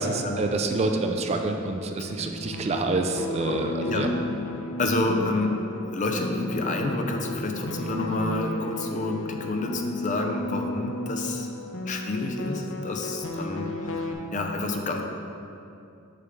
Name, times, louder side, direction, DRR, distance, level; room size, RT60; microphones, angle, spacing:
voice 1, 0.0-4.1, right 3 dB, 30° right, 4 dB, 0.4 m, -27 dB
sound 1, 2.1-14.1, left 2 dB, 85° left, 0.7 m, -34 dB
voice 2, 3.8-4.2 4.8-5.6 5.9-11.5 11.9-15.0, left 2 dB, 40° left, 3 dB, 0.6 m, -29 dB
6.8 x 6.2 x 3.5 m, 2.6 s
head